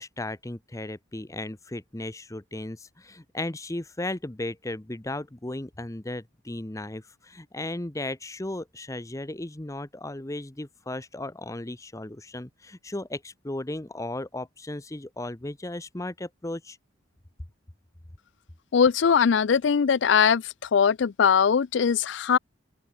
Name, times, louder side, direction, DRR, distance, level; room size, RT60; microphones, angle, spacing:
voice 1, 0.0-16.8, left 1 dB, 15° left, 0.8 m, -35 dB
voice 2, 18.7-20.4 20.7-22.4, left 6 dB, 60° left, 0.4 m, -21 dB
open air
head